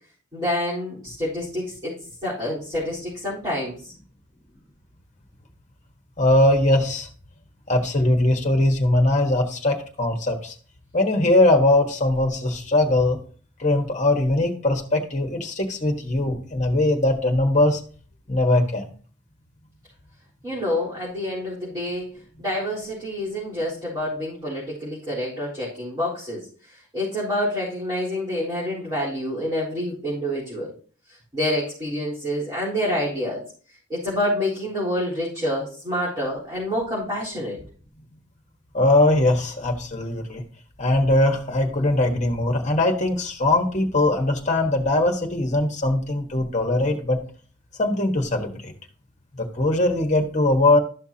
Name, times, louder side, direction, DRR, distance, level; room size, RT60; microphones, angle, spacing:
voice 1, 0.3-1.9 2.2-3.8 20.4-22.1 22.4-30.7 31.3-33.4 33.9-37.6, left 1 dB, 20° right, -11 dB, 4.0 m, -27 dB
voice 2, 6.2-7.1 7.7-10.5 10.9-13.2 13.6-17.8 18.3-18.9 38.7-40.4 40.8-47.2 47.8-48.7 49.3-50.8, left 1 dB, 35° left, 3 dB, 1.4 m, -21 dB
12.5 x 5.9 x 2.8 m, 0.41 s
head